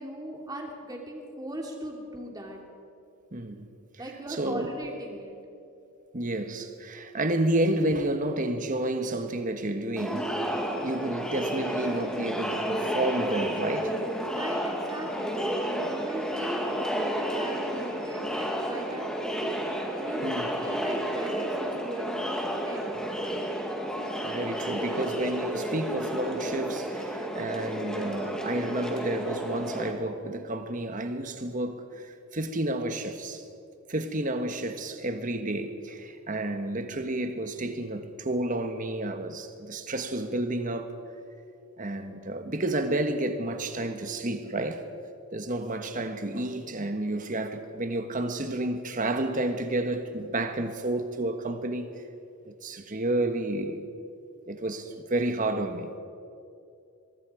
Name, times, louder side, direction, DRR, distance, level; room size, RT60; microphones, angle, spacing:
voice 1, 0.0-2.6 4.0-5.4 14.3-19.5 19.9-22.3 22.6-23.0, right 1 dB, 15° right, 2.9 m, -39 dB
voice 2, 3.3-3.7 4.3-4.7 6.1-10.3 10.8-14.0 20.2-20.5 24.2-33.4 33.9-40.9 41.8-44.9 45.3-51.9 52.5-53.8 54.5-55.9, right 1 dB, 35° right, 1.4 m, -30 dB
Crowd, 10.0-29.9, equal, 5° left, 2.1 m, -31 dB
23.0 x 22.5 x 5.0 m
head